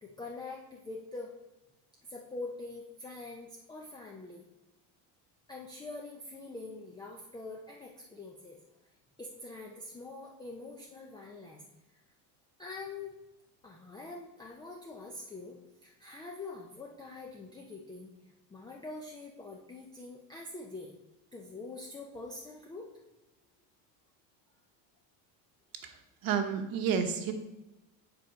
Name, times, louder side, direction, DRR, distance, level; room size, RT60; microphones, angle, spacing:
voice 1, 0.0-1.3 2.1-4.5 5.5-8.6 9.2-11.6 12.6-13.1 13.6-18.1 18.5-20.9 21.3-22.9, left 3 dB, 10° left, -1 dB, 0.5 m, -44 dB
voice 2, 26.2-27.3, right 7 dB, 45° right, 7 dB, 1.0 m, -30 dB
7.9 x 4.4 x 5.1 m, 1.0 s
cardioid pair, 155°, 47 cm